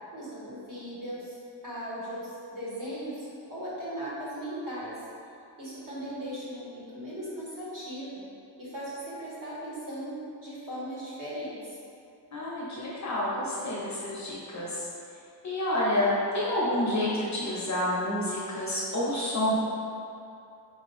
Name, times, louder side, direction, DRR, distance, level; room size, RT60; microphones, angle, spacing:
voice 1, 0.1-1.3 1.6-4.9 5.6-8.2 8.6-10.1 10.4-11.8, equal, 45° right, -9 dB, 1.5 m, -38 dB
voice 2, 12.3-14.9 15.4-19.5, left 1 dB, 40° left, -6 dB, 0.8 m, -29 dB
4.5 x 2.7 x 4.1 m, 2.6 s
wide cardioid pair, 180°, 45 cm